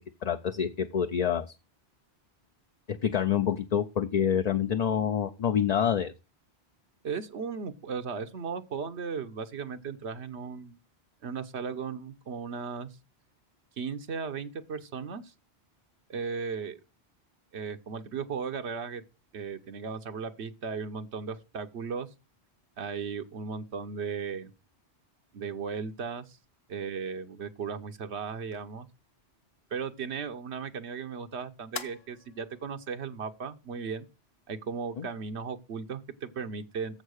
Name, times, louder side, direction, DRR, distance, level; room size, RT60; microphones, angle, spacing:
voice 1, 0.2-1.5 2.9-6.1 35.0-35.1, left 8 dB, 45° left, 0.6 m, -27 dB
voice 2, 7.0-10.8 11.2-12.9 13.8-15.3 16.1-16.8 17.5-19.0 19.3-22.1 22.8-24.5 25.3-26.4 26.7-28.9 29.7-34.1 34.5-37.0, right 5 dB, 85° right, 1.1 m, -36 dB
sound 1, 28.3-35.2, left 5 dB, 70° left, 1.2 m, -50 dB
7.4 x 6.5 x 6.4 m
omnidirectional pair, 1.1 m